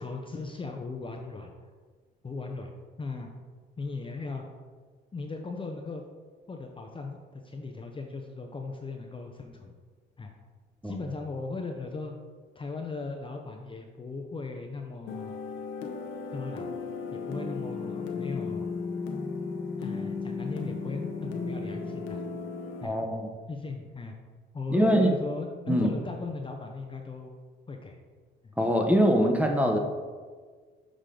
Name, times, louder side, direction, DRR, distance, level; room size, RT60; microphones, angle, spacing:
voice 1, 0.0-1.7 2.2-2.7 3.0-3.3 3.8-4.5 5.1-6.0 6.5-9.7 10.2-10.3 10.8-12.1 12.6-15.4 16.3-16.7 17.1-18.7 19.8-22.2 22.8-23.0 23.5-24.1 24.5-27.4 27.7-28.0 28.4-28.5, left 3 dB, 25° left, 3 dB, 0.6 m, -37 dB
sound 1, 15.1-22.9, left 4 dB, 80° left, 0.9 m, -35 dB
voice 2, 22.8-23.3 24.7-25.1 25.7-25.9 28.6-29.8, equal, 5° right, 3 dB, 0.9 m, -23 dB
6.5 x 5.0 x 3.8 m, 1.5 s
cardioid pair, 90°, 20 cm